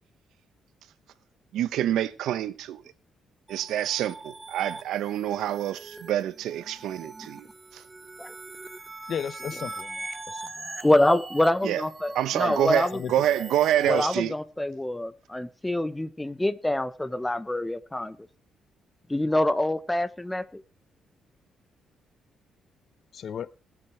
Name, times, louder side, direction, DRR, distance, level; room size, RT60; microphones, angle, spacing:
voice 1, 1.5-2.8 3.5-7.5 7.7-7.8 11.6-11.8 12.1-14.3, right 11 dB, 80° right, 0.9 m, -27 dB
sound 1, 3.5-14.1, right 3 dB, 20° right, 1.3 m, -42 dB
voice 2, 9.1-10.7 12.9-13.1 13.9-14.0 23.1-23.5, left 8 dB, 60° left, 0.8 m, -35 dB
voice 3, 10.8-13.0 13.8-18.2 19.1-20.6, left 1 dB, 10° left, 1.1 m, -25 dB
21.0 x 7.7 x 4.6 m
cardioid pair, 90°, 0 cm